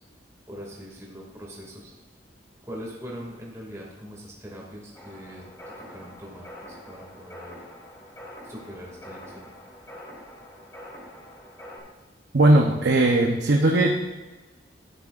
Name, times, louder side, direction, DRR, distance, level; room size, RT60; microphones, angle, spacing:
voice 1, 0.5-1.9 2.7-5.4 5.9-7.6 8.4-9.5, equal, 15° right, -3 dB, 2.3 m, -41 dB
sound 1, 4.9-11.8, equal, 20° left, 3.6 m, -45 dB
voice 2, 12.3-14.0, right 2 dB, 70° right, 0 dB, 0.9 m, -18 dB
12.5 x 9.6 x 2.5 m, 1.2 s
head